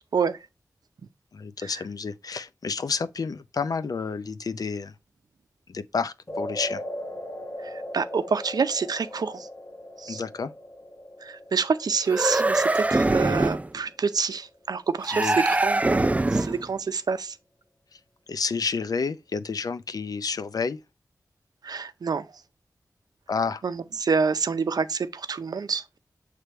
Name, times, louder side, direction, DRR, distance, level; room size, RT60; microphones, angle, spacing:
voice 1, 1.3-4.9 5.7-6.8 10.1-10.5 15.1-15.4 17.9-18.0 18.3-20.8 23.3-23.6, left 5 dB, 70° left, 0.5 m, -30 dB
sound 1, 6.3-14.6, left 1 dB, 40° left, 1.0 m, -39 dB
voice 2, 7.6-9.5 10.0-10.2 11.2-17.3 21.6-22.3 23.6-26.0, right 5 dB, 85° right, 0.5 m, -27 dB
sound 2, 12.1-13.7 15.0-16.7, right 2 dB, 20° right, 0.4 m, -23 dB
6.7 x 3.3 x 4.4 m
wide cardioid pair, 80°, 7 cm